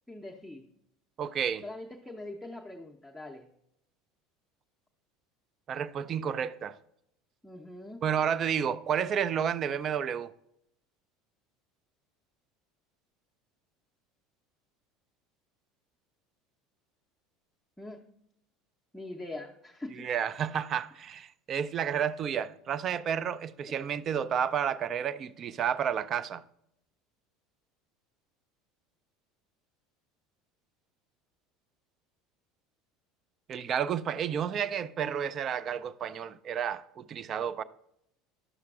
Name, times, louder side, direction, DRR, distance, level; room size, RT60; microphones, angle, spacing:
voice 1, 0.1-0.6 1.6-3.5 7.4-8.0 17.8-18.0 18.9-20.1 23.7-23.8 35.0-35.3, left 2 dB, 5° left, 0.6 m, -43 dB
voice 2, 1.2-1.7 5.7-6.8 8.0-10.3 20.0-26.4 33.5-37.6, right 8 dB, 35° right, 0.3 m, -31 dB
11.0 x 6.4 x 2.3 m
figure-of-eight pair, 70°, 0 cm